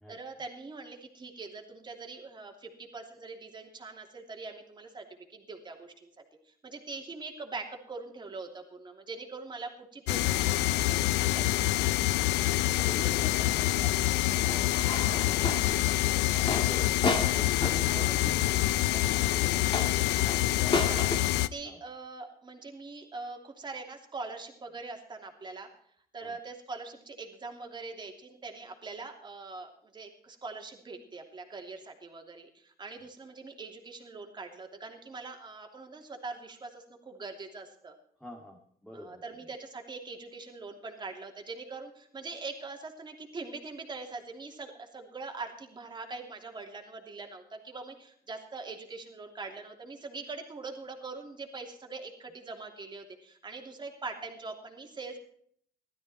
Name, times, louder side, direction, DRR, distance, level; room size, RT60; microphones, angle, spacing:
voice 1, 0.1-6.1 6.5-11.5 17.9-18.3 20.9-21.1 21.5-25.7 26.1-37.9 38.9-55.2, right 3 dB, 25° right, 3 dB, 3.0 m, -43 dB
sound 1, 10.1-21.5, left 16 dB, 85° left, 0.6 m, -26 dB
voice 2, 12.4-16.0 16.5-16.9 17.3-19.7 20.5-20.8 21.6-21.8 26.2-26.3 38.2-39.2, equal, ahead, 0 dB, 2.0 m, -46 dB
sound 2, 14.3-21.2, left 3 dB, 30° left, 2.2 m, -33 dB
16.0 x 13.0 x 4.4 m, 0.63 s
cardioid pair, 110°, 17 cm